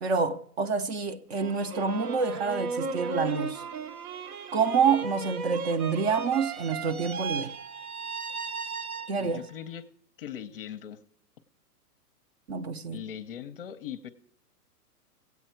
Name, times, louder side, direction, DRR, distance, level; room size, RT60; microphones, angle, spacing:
voice 1, 0.0-3.6 4.5-7.5 9.1-9.5 12.5-13.0, right 5 dB, 45° right, 0.7 m, -27 dB
sound 1, 1.3-9.5, right 5 dB, 65° right, 1.0 m, -36 dB
voice 2, 9.2-9.8 10.2-11.0 12.9-14.1, left 9 dB, 35° left, 0.6 m, -40 dB
16.5 x 8.2 x 4.4 m
hypercardioid pair, 150°, 47 cm